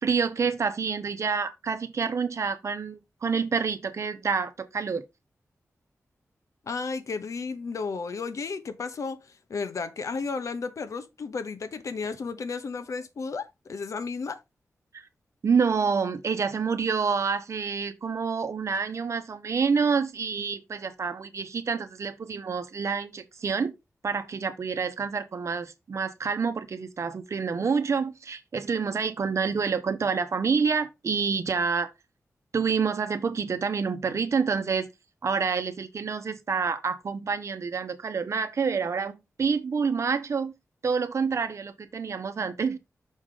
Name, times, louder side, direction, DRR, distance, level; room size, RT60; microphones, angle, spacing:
voice 1, 0.0-5.0 14.9-15.1 15.4-23.7 24.0-31.9 32.5-34.9 35.2-40.5 40.8-42.8, right 5 dB, 60° right, 0.9 m, -28 dB
voice 2, 6.6-14.4, left 4 dB, 70° left, 0.9 m, -33 dB
6.4 x 4.9 x 3.7 m
wide cardioid pair, 110°, 6 cm